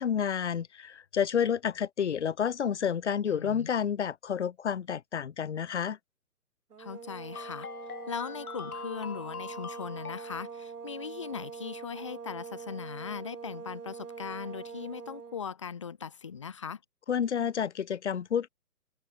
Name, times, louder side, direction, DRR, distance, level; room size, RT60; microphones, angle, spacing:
voice 1, 0.0-6.0 17.1-18.5, left 8 dB, 45° left, 1.0 m, -30 dB
voice 2, 3.3-3.7 6.8-7.7 8.1-16.8, left 7 dB, 20° left, 0.8 m, -39 dB
sound 1, 6.7-15.4, right 6 dB, 70° right, 1.8 m, -43 dB
sound 2, 7.3-10.5, left 7 dB, 60° left, 1.5 m, -43 dB
figure-of-eight pair, 155°, 48 cm